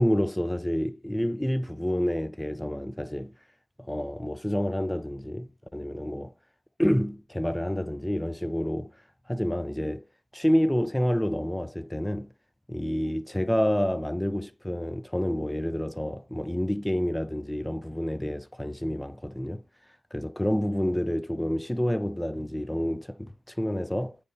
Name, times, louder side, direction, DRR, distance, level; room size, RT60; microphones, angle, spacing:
voice 1, 0.0-3.3 3.8-6.3 6.8-9.0 9.3-10.1 10.3-12.3 12.7-19.6 20.1-24.2, equal, 10° left, 0.5 m, -28 dB
8.6 x 3.3 x 4.0 m
cardioid pair, 55°, 0 cm